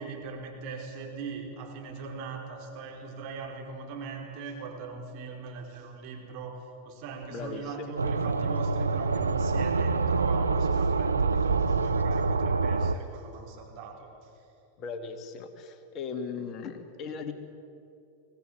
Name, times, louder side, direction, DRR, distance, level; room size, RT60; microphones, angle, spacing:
voice 1, 0.0-14.1, right 4 dB, 50° right, 2 dB, 4.9 m, -40 dB
voice 2, 7.3-7.9 14.8-17.3, left 5 dB, 40° left, 6 dB, 2.4 m, -38 dB
sound 1, 8.0-12.9, right 4 dB, 90° right, 0.9 m, -26 dB
24.0 x 17.5 x 9.5 m, 2.7 s
hypercardioid pair, 95°, 0 cm